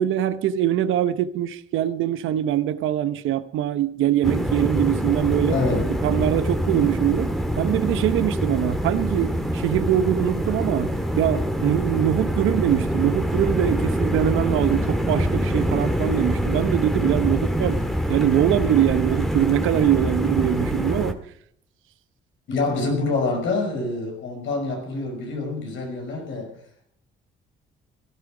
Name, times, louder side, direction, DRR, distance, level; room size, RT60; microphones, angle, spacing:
voice 1, 0.0-5.6 6.0-17.8 18.1-21.2, right 11 dB, 85° right, 0.9 m, -23 dB
sound 1, 4.2-21.1, equal, ahead, 1.9 m, -25 dB
voice 2, 5.5-5.9 22.5-26.6, left 3 dB, 75° left, 5.8 m, -26 dB
16.5 x 13.0 x 5.0 m
cardioid pair, 90°, 20 cm